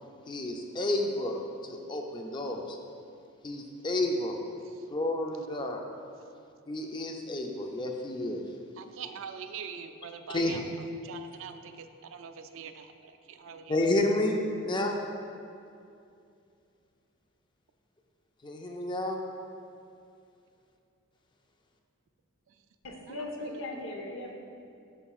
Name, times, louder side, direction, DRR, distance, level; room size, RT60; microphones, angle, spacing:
voice 1, 0.3-2.8 3.4-4.4 4.9-5.8 6.7-8.4 10.3-10.6 13.7-15.0 18.4-19.2, left 1 dB, 20° left, 2 dB, 0.4 m, -30 dB
voice 2, 8.8-10.6 11.0-13.7 23.1-23.6, right 6 dB, 65° right, 8 dB, 0.4 m, -43 dB
voice 3, 22.8-24.3, left 1 dB, 65° left, 1 dB, 0.9 m, -38 dB
12.5 x 5.5 x 2.4 m, 2.5 s
head